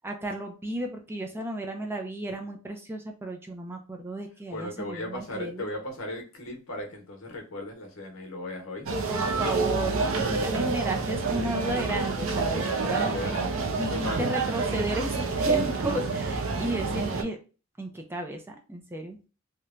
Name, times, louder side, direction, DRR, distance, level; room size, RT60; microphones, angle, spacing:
voice 1, 0.0-5.7 9.1-13.3 13.8-17.4 17.8-19.2, right 1 dB, 10° right, 0.3 m, -33 dB
voice 2, 4.5-8.9 9.9-10.6 13.0-13.6 13.9-14.2, left 1 dB, 75° left, 0.9 m, -37 dB
sound 1, 8.9-17.2, right 4 dB, 70° right, 0.5 m, -28 dB
3.1 x 2.1 x 2.4 m
head